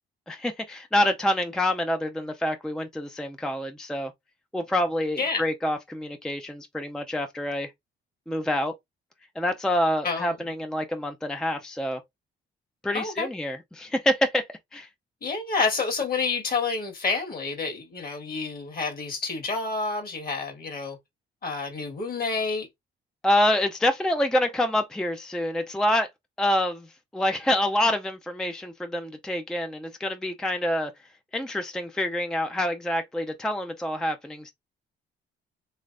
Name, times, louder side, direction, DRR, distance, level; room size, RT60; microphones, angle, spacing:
voice 1, 0.3-4.1 4.5-7.7 8.3-8.7 9.4-12.0 12.8-14.5 14.7-14.9 23.2-26.1 26.4-26.9 27.1-30.9 31.3-34.5, left 1 dB, 5° left, 0.4 m, -26 dB
voice 2, 10.0-10.3 12.9-13.3 15.2-21.0 21.4-22.7, left 4 dB, 50° left, 1.6 m, -29 dB
3.3 x 3.1 x 2.5 m
cardioid pair, 90°, 20 cm